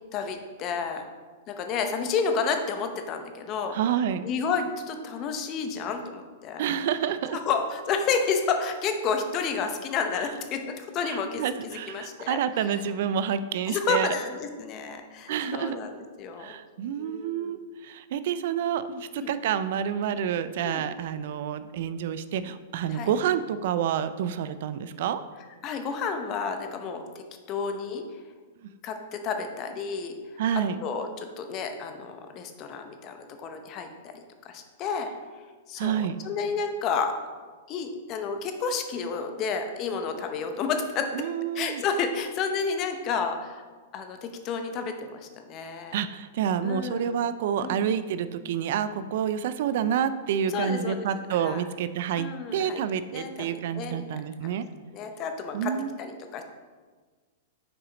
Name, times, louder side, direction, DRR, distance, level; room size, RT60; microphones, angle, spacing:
voice 1, 0.1-1.1 1.5-3.8 4.2-6.7 7.3-12.4 13.7-15.9 16.2-16.5 17.0-17.5 19.2-19.3 20.6-20.8 22.9-23.1 25.6-28.0 28.8-30.1 30.5-33.9 34.4-35.1 35.7-37.2 37.7-41.2 41.5-43.6 43.9-45.9 46.6-47.1 47.6-47.8 50.5-51.6 52.2-52.8 53.1-54.0 54.4-54.5 54.9-56.4, left 5 dB, 35° left, 6 dB, 0.7 m, -31 dB
voice 2, 3.7-4.3 6.6-7.4 11.0-14.1 15.3-15.8 16.4-25.2 30.4-30.8 35.8-36.2 41.1-41.8 45.9-52.3 52.5-54.7 55.5-56.0, right 8 dB, 60° right, 13 dB, 0.3 m, -28 dB
6.0 x 4.9 x 3.9 m, 1.4 s
hypercardioid pair, 125°, 0 cm